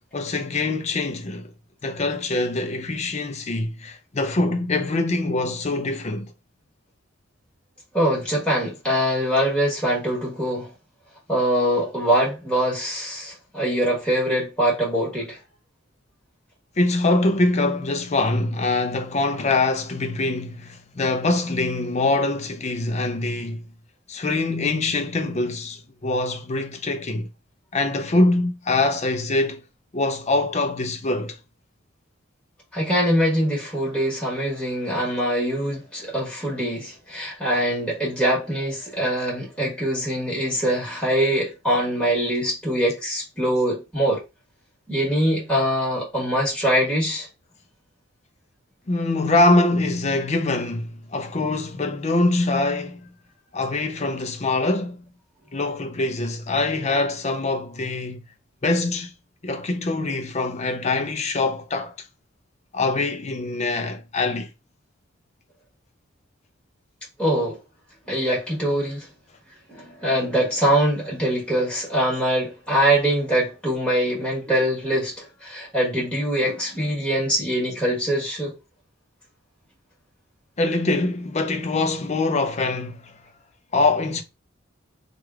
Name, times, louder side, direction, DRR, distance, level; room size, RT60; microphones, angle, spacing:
voice 1, 0.1-1.5 1.8-6.3 16.8-23.6 24.1-27.3 27.7-29.6 29.9-31.4 48.9-53.0 53.5-55.0 55.5-58.2 58.6-59.1 59.4-61.9 62.7-64.5 80.6-83.1 83.7-84.2, left 2 dB, 35° left, 0.5 m, -24 dB
voice 2, 7.9-10.7 11.3-15.4 32.7-44.2 44.9-47.3 67.2-67.6 68.1-69.1 69.7-78.5, equal, 5° left, 1.5 m, -23 dB
3.3 x 2.4 x 4.5 m
head